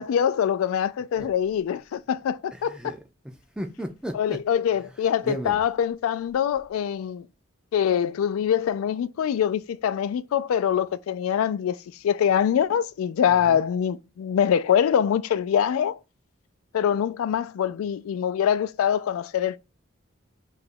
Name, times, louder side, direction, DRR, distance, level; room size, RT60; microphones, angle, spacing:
voice 1, 0.0-2.9 4.1-7.3 7.7-11.8 12.0-16.0 16.7-19.6, left 8 dB, 85° left, 0.3 m, -24 dB
voice 2, 2.7-4.4 5.2-5.6 13.4-13.6, equal, 5° right, 0.4 m, -35 dB
2.9 x 2.4 x 4.2 m
head